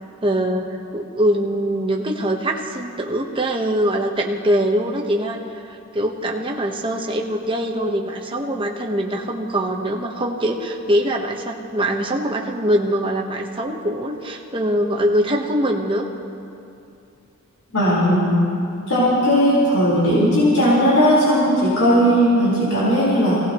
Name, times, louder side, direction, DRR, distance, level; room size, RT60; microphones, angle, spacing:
voice 1, 0.2-0.7 0.9-16.1, right 1 dB, 25° right, 1 dB, 1.1 m, -23 dB
voice 2, 17.7-18.4 18.9-23.4, equal, 85° left, -8 dB, 4.4 m, -17 dB
25.0 x 18.0 x 3.1 m, 2.7 s
head